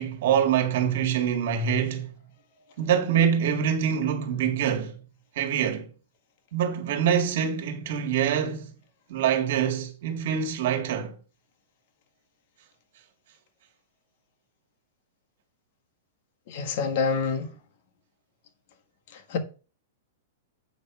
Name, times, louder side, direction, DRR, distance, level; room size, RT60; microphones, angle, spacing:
voice 1, 0.0-2.1 2.8-5.0 5.4-5.9 6.5-8.7 9.1-11.2, right 8 dB, 60° right, 2.0 m, -25 dB
voice 2, 16.5-17.5 19.1-19.4, left 5 dB, 50° left, 1.6 m, -27 dB
8.1 x 3.4 x 6.0 m
hypercardioid pair, 145°, 0 cm